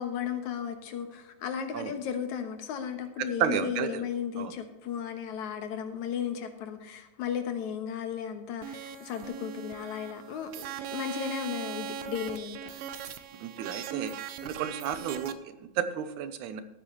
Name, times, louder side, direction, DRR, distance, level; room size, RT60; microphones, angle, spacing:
voice 1, 0.0-12.7, left 8 dB, 75° left, 7 dB, 2.5 m, -35 dB
voice 2, 3.2-4.0 4.4-4.5 13.4-14.1 14.4-16.6, right 9 dB, 90° right, 11 dB, 2.3 m, -32 dB
sound 1, 8.6-15.3, right 7 dB, 75° right, 1.5 m, -39 dB
15.0 x 9.3 x 3.2 m, 1.1 s
omnidirectional pair, 3.4 m